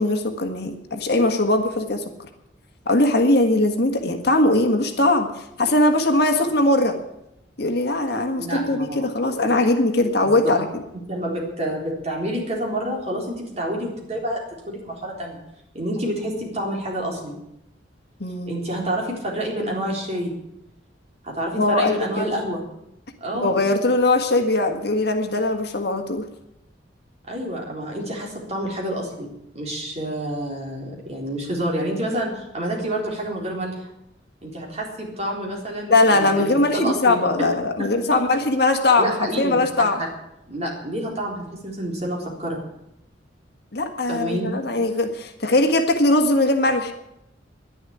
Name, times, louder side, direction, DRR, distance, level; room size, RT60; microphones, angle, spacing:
voice 1, 0.0-2.0 2.8-7.0 7.6-10.8 18.2-18.6 21.6-22.3 23.4-26.2 35.9-40.0 43.7-46.9, left 2 dB, 60° left, 5 dB, 1.7 m, -20 dB
voice 2, 8.1-9.1 10.2-10.3 11.1-15.4 15.7-17.4 18.5-20.3 21.2-22.6 23.2-23.6 27.3-29.3 29.5-33.8 34.4-37.5 37.8-37.9 39.0-40.1 40.5-42.6 44.1-44.6, right 1 dB, 35° right, -1 dB, 3.9 m, -28 dB
11.0 x 11.0 x 9.9 m, 0.86 s
head